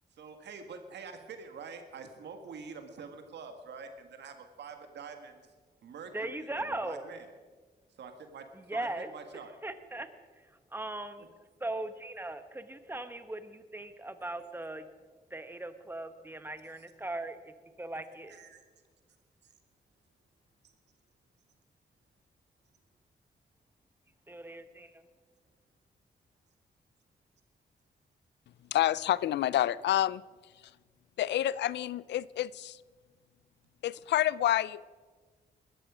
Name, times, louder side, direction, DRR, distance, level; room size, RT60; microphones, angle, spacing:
voice 1, 0.1-5.5 5.8-7.3 8.0-9.5 11.2-11.3 18.3-18.6, right 5 dB, 85° right, 6 dB, 1.9 m, -46 dB
voice 2, 6.1-7.1 8.5-9.1 9.6-10.1 10.4-11.2 11.6-14.9 15.3-18.4 24.3-25.1, right 2 dB, 10° right, 10 dB, 1.3 m, -39 dB
voice 3, 28.7-30.2 31.2-32.8 33.8-34.8, left 12 dB, 85° left, 20 dB, 0.4 m, -28 dB
20.0 x 13.5 x 5.0 m, 1.4 s
cardioid pair, 70°, 17 cm